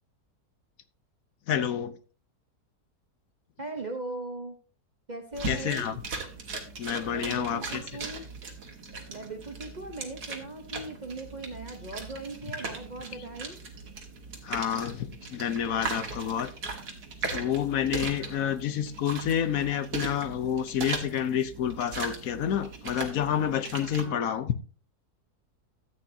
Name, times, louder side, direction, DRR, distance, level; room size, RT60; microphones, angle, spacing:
voice 1, 1.5-2.0 5.5-5.9 6.8-7.8 14.4-16.5 17.3-24.6, left 9 dB, 65° left, 1.1 m, -29 dB
voice 2, 3.6-4.6 5.1-6.0 7.1-8.3 9.1-13.6 18.1-18.7 23.8-24.3, right 2 dB, 35° right, 0.9 m, -39 dB
sound 1, 5.3-24.1, right 4 dB, 75° right, 2.1 m, -38 dB
13.5 x 8.6 x 2.7 m
omnidirectional pair, 1.7 m